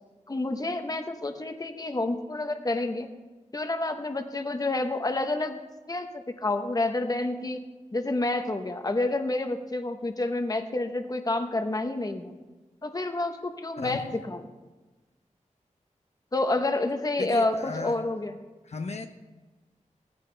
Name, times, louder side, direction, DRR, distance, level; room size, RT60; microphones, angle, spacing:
voice 1, 0.3-3.1 3.5-5.6 5.9-7.6 7.9-12.3 12.8-14.4 16.3-18.3, left 2 dB, 30° left, 7 dB, 1.0 m, -29 dB
voice 2, 17.2-18.1 18.6-19.1, left 4 dB, 55° left, 5 dB, 0.8 m, -34 dB
17.0 x 14.5 x 3.4 m, 1.2 s
wide cardioid pair, 110°, 13 cm